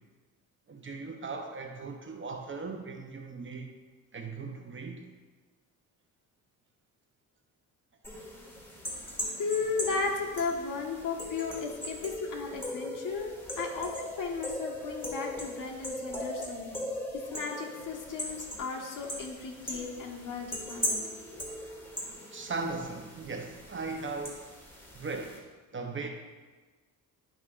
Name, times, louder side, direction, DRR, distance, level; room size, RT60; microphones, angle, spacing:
voice 1, 0.7-3.7 4.1-5.1 9.5-9.7 22.3-24.5 24.9-25.4 25.7-26.1, right 4 dB, 30° right, 4 dB, 0.7 m, -38 dB
sound 1, 8.0-25.4, equal, 5° left, 1.8 m, -39 dB
voice 2, 9.3-16.8 17.3-21.0 21.3-21.4, left 4 dB, 55° left, 0 dB, 1.4 m, -35 dB
11.0 x 5.6 x 2.4 m, 1.3 s
cardioid pair, 115°, 38 cm